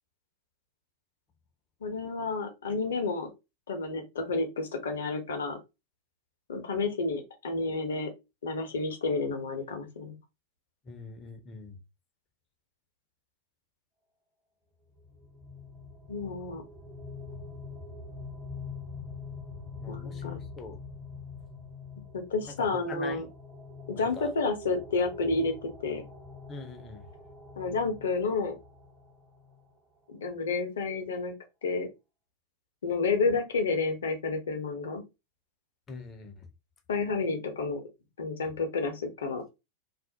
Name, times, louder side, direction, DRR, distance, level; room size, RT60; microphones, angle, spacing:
voice 1, 1.8-3.3 3.7-5.6 6.5-8.1 8.4-10.1 16.1-16.6 19.9-20.3 22.1-23.3 23.9-26.0 27.6-28.6 30.1-31.3 31.6-31.9 32.8-35.0 36.9-37.8 38.2-39.6, left 3 dB, 65° left, 0.7 m, -30 dB
voice 2, 10.9-11.8 17.3-17.4 19.8-20.8 22.6-23.3 24.0-24.3 26.5-27.0 35.9-36.5, left 4 dB, 25° left, 0.6 m, -42 dB
sound 1, 15.0-29.7, left 4 dB, 25° right, 0.9 m, -44 dB
2.3 x 2.0 x 2.7 m
figure-of-eight pair, 90°, 0 cm